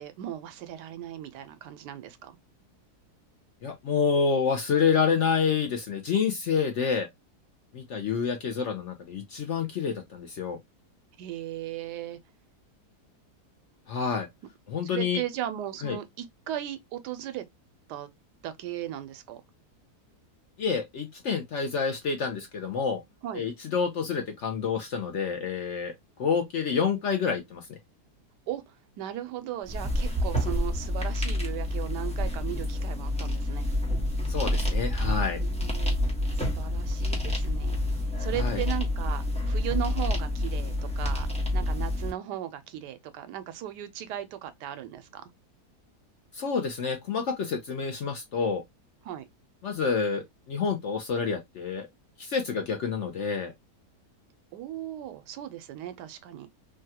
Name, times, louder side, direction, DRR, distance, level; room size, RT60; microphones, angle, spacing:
voice 1, 0.0-2.4 11.2-12.2 14.9-17.4 17.9-18.1 18.4-19.4 23.2-23.4 28.5-33.7 35.4-36.0 36.4-37.8 38.2-41.3 41.5-45.3 49.0-49.3 54.5-56.5, right 12 dB, 90° right, 1.2 m, -37 dB
voice 2, 3.6-7.1 7.7-10.6 13.9-14.3 14.7-15.2 15.8-16.0 20.6-23.0 23.3-25.9 26.2-27.8 34.3-35.4 38.4-38.6 46.3-48.6 49.6-51.9 52.2-53.5, left 6 dB, 65° left, 0.7 m, -28 dB
sound 1, 29.6-42.1, left 1 dB, 5° left, 0.8 m, -28 dB
3.5 x 2.2 x 2.7 m
omnidirectional pair, 1.7 m